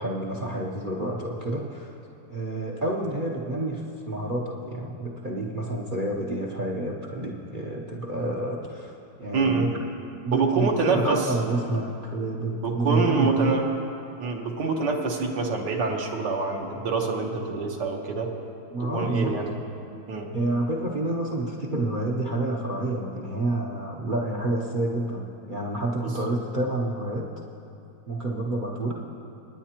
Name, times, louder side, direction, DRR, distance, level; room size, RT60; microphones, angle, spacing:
voice 1, 0.0-1.9 2.3-8.9 9.2-9.7 10.2-13.6 18.7-19.4 20.3-27.3 28.1-28.9, right 2 dB, 45° right, -2 dB, 0.7 m, -29 dB
voice 2, 9.3-9.7 10.3-11.2 12.5-13.7 14.2-18.3 18.8-19.5 20.1-20.4, right 4 dB, 75° right, 1 dB, 1.7 m, -26 dB
24.0 x 9.9 x 2.9 m, 2.7 s
omnidirectional pair, 2.0 m